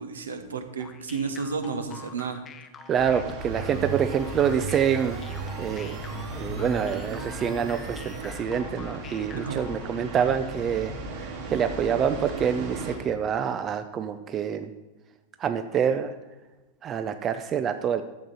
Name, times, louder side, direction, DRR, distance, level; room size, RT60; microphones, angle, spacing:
voice 1, 0.0-2.4 9.3-9.6, right 5 dB, 70° right, 7 dB, 1.1 m, -32 dB
sound 1, 0.8-9.9, left 6 dB, 25° left, 0.7 m, -46 dB
voice 2, 2.9-6.1 6.3-14.7 15.4-16.2 16.8-18.0, right 8 dB, 30° right, 9 dB, 0.5 m, -27 dB
sound 2, 3.0-13.0, right 3 dB, 55° right, 2.7 m, -36 dB
sound 3, 3.4-8.4, right 2 dB, 10° right, 1.2 m, -48 dB
12.0 x 7.7 x 4.1 m, 1.1 s
figure-of-eight pair, 90°, 0 cm